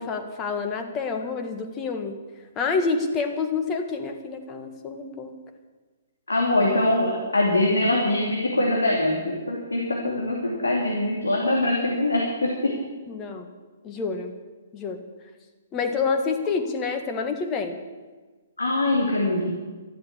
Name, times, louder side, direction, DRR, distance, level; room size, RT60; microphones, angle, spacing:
voice 1, 0.0-2.2 2.5-5.4 13.1-13.5 13.8-14.3 14.7-15.0 15.7-17.8, left 4 dB, 20° left, 6 dB, 1.7 m, -28 dB
voice 2, 6.3-12.7 18.6-19.5, left 1 dB, 75° left, -1 dB, 2.7 m, -23 dB
13.0 x 12.0 x 7.3 m, 1.3 s
figure-of-eight pair, 120°, 0 cm